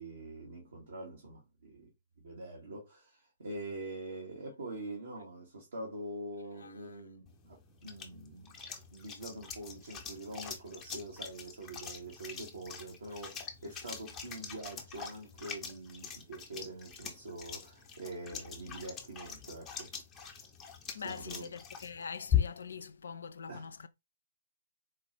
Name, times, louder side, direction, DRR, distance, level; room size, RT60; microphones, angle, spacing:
voice 1, 0.0-1.9 2.2-8.5 8.9-19.9 20.9-21.5 23.5-23.7, right 2 dB, 65° right, 1.4 m, -45 dB
voice 2, 6.6-7.0 20.9-23.9, left 6 dB, 65° left, 0.4 m, -44 dB
sound 1, 7.3-22.8, left 9 dB, 15° left, 0.8 m, -41 dB
4.4 x 2.4 x 3.0 m
figure-of-eight pair, 125°, 0 cm